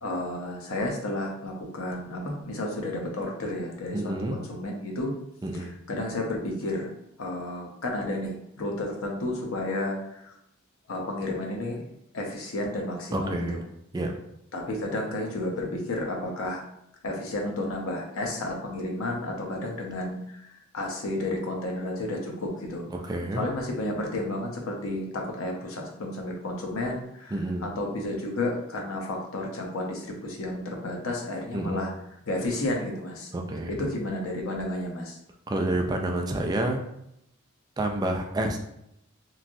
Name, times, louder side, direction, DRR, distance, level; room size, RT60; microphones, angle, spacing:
voice 1, 0.0-5.1 5.5-6.9 7.2-10.3 10.9-11.8 12.1-13.6 14.5-16.6 17.0-22.9 23.3-31.9 32.2-33.3 33.7-35.2, left 1 dB, 90° left, 1 dB, 0.7 m, -32 dB
voice 2, 3.9-4.4 5.4-5.7 13.1-13.6 13.9-14.1 22.9-23.4 27.3-27.7 31.5-31.9 33.3-33.7 35.5-36.8 37.8-38.6, right 1 dB, 20° right, 3 dB, 0.3 m, -29 dB
3.0 x 2.6 x 2.5 m, 0.79 s
head